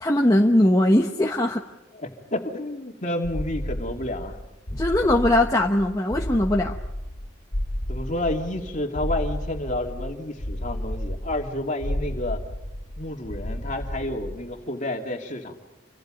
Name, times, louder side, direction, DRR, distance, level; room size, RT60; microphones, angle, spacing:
voice 1, 0.0-1.6 4.7-6.7, left 1 dB, 15° left, 1 dB, 1.0 m, -20 dB
voice 2, 1.9-4.3 7.9-12.4 13.0-15.6, left 1 dB, 35° left, 2 dB, 2.8 m, -30 dB
sound 1, 3.2-14.6, left 1 dB, 85° left, 2.3 m, -32 dB
28.0 x 25.0 x 5.3 m, 1.0 s
head